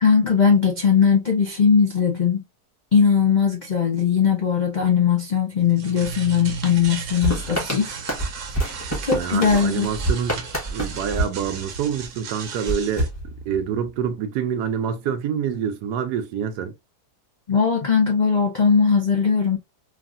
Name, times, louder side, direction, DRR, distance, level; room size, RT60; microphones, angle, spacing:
voice 1, 0.0-2.4 2.9-7.9 8.5-8.8 9.0-9.9 17.5-19.6, left 6 dB, 70° left, 0.4 m, -19 dB
sound 1, 5.5-13.1, right 6 dB, 60° right, 0.9 m, -35 dB
sound 2, 7.2-12.1 12.6-13.9, right 1 dB, 10° left, 0.9 m, -28 dB
voice 2, 9.1-13.1 13.5-16.8, right 8 dB, 85° right, 1.2 m, -27 dB
3.4 x 2.4 x 2.4 m
omnidirectional pair, 1.7 m